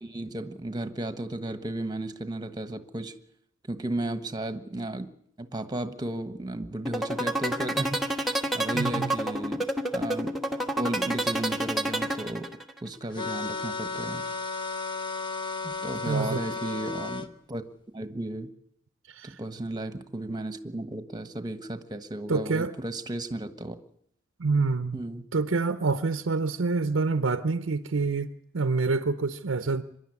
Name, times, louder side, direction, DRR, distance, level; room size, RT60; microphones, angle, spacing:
voice 1, 0.0-3.1 3.7-5.1 5.4-9.6 9.9-10.3 10.8-12.5 12.8-14.2 15.6-17.6 17.9-18.5 19.2-23.8 24.9-25.3, right 1 dB, 20° right, 1.3 m, -34 dB
sound 1, 6.9-12.8, right 1 dB, ahead, 1.3 m, -28 dB
voice 2, 8.7-9.1 16.1-16.4 19.1-19.4 22.3-22.7 24.4-25.0 25.3-29.8, right 4 dB, 70° right, 0.7 m, -27 dB
sound 2, 13.2-17.3, left 4 dB, 25° left, 1.0 m, -33 dB
25.0 x 11.5 x 9.7 m
head